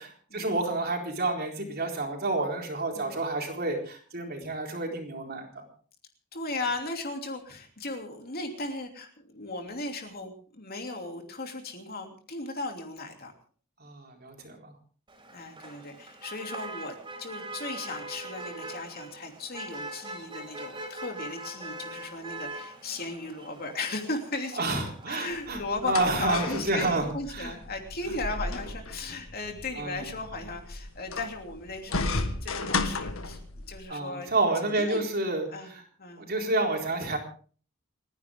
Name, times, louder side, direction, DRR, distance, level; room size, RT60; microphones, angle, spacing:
voice 1, 0.0-5.6 13.8-14.7 24.6-27.5 29.8-30.1 33.9-35.8 36.2-37.2, right 2 dB, 45° right, 1 dB, 4.2 m, -29 dB
voice 2, 6.3-13.3 15.3-24.6 25.1-33.4 33.7-34.3 34.6-35.0 35.5-35.7 36.0-36.2, left 2 dB, 45° left, 4 dB, 2.9 m, -36 dB
Motor vehicle (road), 15.1-25.6, right 2 dB, 20° right, 4.5 m, -42 dB
sound 1, 25.3-33.8, left 3 dB, 75° left, 1.7 m, -34 dB
29.5 x 11.0 x 3.7 m, 0.43 s
head